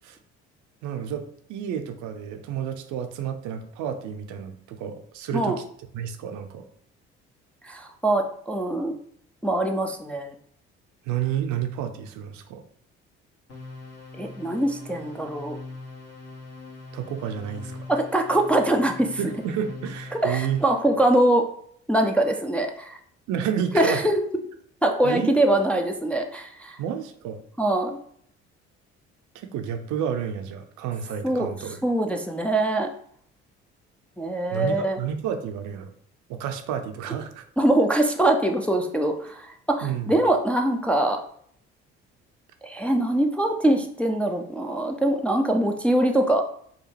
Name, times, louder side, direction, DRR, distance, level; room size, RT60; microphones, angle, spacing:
voice 1, 0.8-5.6 5.9-6.7 11.1-12.6 16.9-17.8 19.2-20.6 23.3-24.0 25.0-25.3 26.8-27.4 29.3-31.8 34.5-35.9 36.3-37.4 39.8-40.1, right 8 dB, 60° right, 7 dB, 0.6 m, -30 dB
voice 2, 7.6-8.9 9.4-10.3 14.2-15.6 17.9-19.2 20.2-21.4 21.9-23.0 23.7-24.1 24.8-26.8 27.6-28.0 31.2-31.5 31.8-32.9 34.2-35.0 37.6-41.2 42.6-46.4, right 1 dB, 5° left, 3 dB, 0.4 m, -23 dB
sound 1, 13.5-21.1, left 3 dB, 50° left, 1.5 m, -42 dB
4.9 x 2.3 x 3.2 m, 0.64 s
hypercardioid pair, 50°, 34 cm